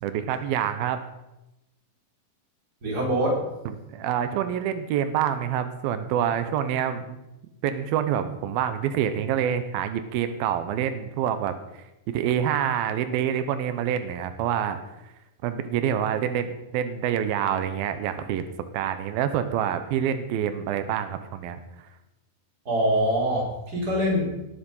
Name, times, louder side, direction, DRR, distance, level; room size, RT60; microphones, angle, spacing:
voice 1, 0.0-1.0 3.9-7.2 7.6-14.8 15.0-15.1 15.4-18.4 18.7-21.9, right 9 dB, 90° right, 10 dB, 2.8 m, -27 dB
voice 2, 2.8-3.4 22.7-24.2, equal, 25° right, -2 dB, 4.3 m, -24 dB
18.0 x 10.0 x 5.5 m, 0.94 s
omnidirectional pair, 4.1 m